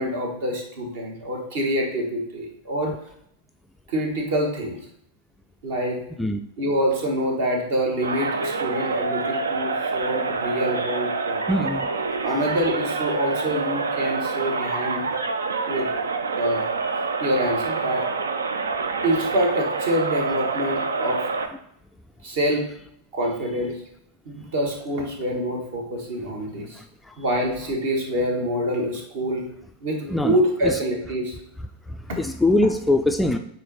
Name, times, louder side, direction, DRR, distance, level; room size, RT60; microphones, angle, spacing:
voice 1, 0.0-2.9 3.9-4.8 5.6-6.0 6.6-11.4 12.2-15.0 15.7-15.9 16.3-16.6 17.2-18.1 19.0-21.2 22.2-22.7 23.1-23.8 24.3-26.6 27.2-29.5 29.8-31.3, equal, 55° right, 2 dB, 1.4 m, -26 dB
sound 1, 8.0-21.5, right 4 dB, 70° right, 0.4 m, -27 dB
voice 2, 11.5-11.9 26.8-27.2 30.1-30.4 30.6-30.8 31.9-33.4, left 2 dB, 5° left, 6 dB, 0.3 m, -23 dB
8.4 x 3.1 x 3.9 m, 0.72 s
figure-of-eight pair, 90°, 0 cm